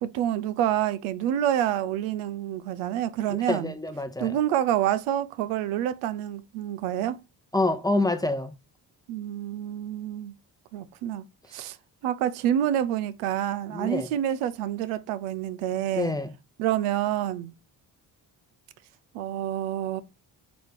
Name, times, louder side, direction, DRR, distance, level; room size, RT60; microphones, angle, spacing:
voice 1, 0.0-3.7 4.2-7.2 9.1-10.3 10.7-11.2 11.5-11.8 12.0-16.1 16.6-17.5 19.1-20.0, right 11 dB, 85° right, 0.5 m, -27 dB
voice 2, 3.3-4.3 7.5-8.5 13.7-14.1 15.9-16.3, left 2 dB, 10° left, 0.7 m, -27 dB
4.2 x 2.8 x 3.7 m
supercardioid pair, 50°, 49 cm